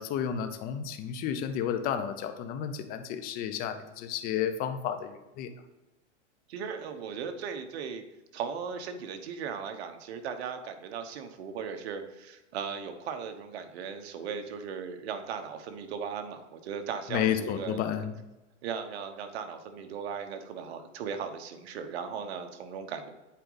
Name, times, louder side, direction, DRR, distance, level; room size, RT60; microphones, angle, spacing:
voice 1, 0.0-5.5 17.1-18.1, left 9 dB, 25° left, 8 dB, 0.6 m, -32 dB
voice 2, 6.5-8.0 8.3-17.9 18.6-23.1, right 6 dB, 60° right, 7 dB, 1.1 m, -37 dB
8.0 x 4.9 x 4.0 m, 1.1 s
hypercardioid pair, 140°, 36 cm